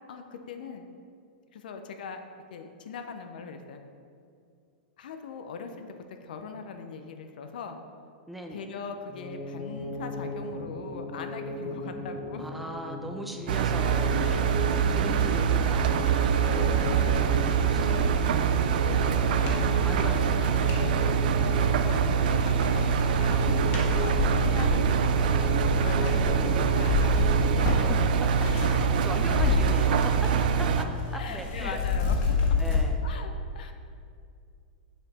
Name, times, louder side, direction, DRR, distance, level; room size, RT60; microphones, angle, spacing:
voice 1, 0.1-0.8 1.5-2.2 2.5-3.8 5.0-7.8 8.5-12.5 14.2-14.5 16.5-17.9 18.8-21.2 21.5-23.5 23.8-27.2 27.5-27.8 28.4-28.9 31.1-32.6 33.0-33.7, left 5 dB, 75° left, 6 dB, 0.6 m, -41 dB
voice 2, 8.3-8.6 12.4-16.7 17.5-18.9 19.8-20.3 20.6-20.9 25.8-26.7 27.9-28.5 28.9-31.8 32.6-33.0, right 1 dB, ahead, 2 dB, 0.7 m, -39 dB
sound 1, 9.1-27.9, equal, 20° left, 1.2 m, -37 dB
Engine, 13.5-30.8, right 7 dB, 70° right, 0.4 m, -24 dB
sound 2, 14.7-20.9 21.4-22.0 22.3-28.8 29.1-30.5 30.7-32.8, left 5 dB, 45° left, 1.6 m, -31 dB
6.8 x 5.1 x 4.2 m, 2.3 s
hypercardioid pair, 125°, 5 cm